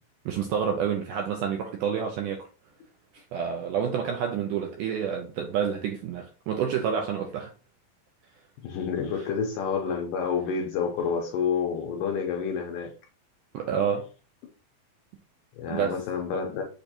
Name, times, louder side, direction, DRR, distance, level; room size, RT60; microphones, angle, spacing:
voice 1, 0.3-2.5 3.1-7.5 13.5-14.1 15.7-16.0, right 7 dB, 80° right, 1.9 m, -28 dB
voice 2, 8.6-12.9 15.6-16.7, left 6 dB, 80° left, 2.0 m, -29 dB
6.5 x 2.6 x 2.8 m
omnidirectional pair, 4.2 m